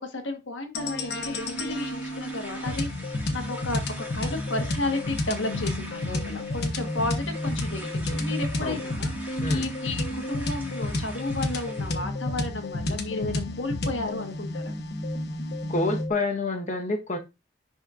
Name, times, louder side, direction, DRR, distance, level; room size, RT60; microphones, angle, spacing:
voice 1, 0.0-2.9 3.1-14.8, left 2 dB, 80° left, 1.4 m, -33 dB
sound 1, 0.7-16.1, left 2 dB, 60° left, 1.1 m, -31 dB
sound 2, 1.1-12.0, right 1 dB, 10° right, 1.8 m, -44 dB
voice 2, 15.7-17.2, left 2 dB, 40° left, 1.2 m, -27 dB
10.5 x 4.3 x 2.5 m
head